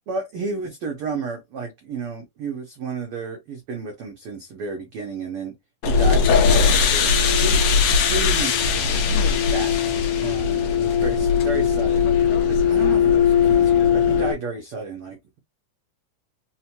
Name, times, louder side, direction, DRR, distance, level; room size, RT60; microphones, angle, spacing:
voice 1, 0.1-5.5 5.8-8.6 9.4-9.9 10.2-12.1 12.5-15.4, right 4 dB, 80° right, 1.2 m, -32 dB
sound 1, 5.8-14.3, left 6 dB, 75° left, 1.4 m, -19 dB
4.8 x 2.1 x 2.8 m
omnidirectional pair, 3.6 m